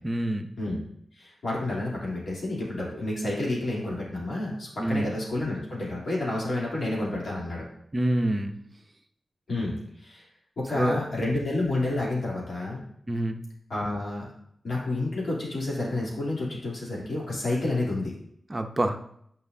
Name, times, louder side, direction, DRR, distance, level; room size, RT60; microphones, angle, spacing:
voice 1, 0.0-0.5 4.8-5.1 7.9-8.5 10.7-11.0 13.1-13.4 18.5-19.0, right 1 dB, 25° right, 5 dB, 0.7 m, -26 dB
voice 2, 1.2-7.6 9.5-10.2 10.6-12.8 13.7-14.3 14.6-18.1, left 2 dB, 65° left, -5 dB, 2.9 m, -30 dB
9.4 x 5.3 x 2.7 m, 0.70 s
cardioid pair, 70°, 0 cm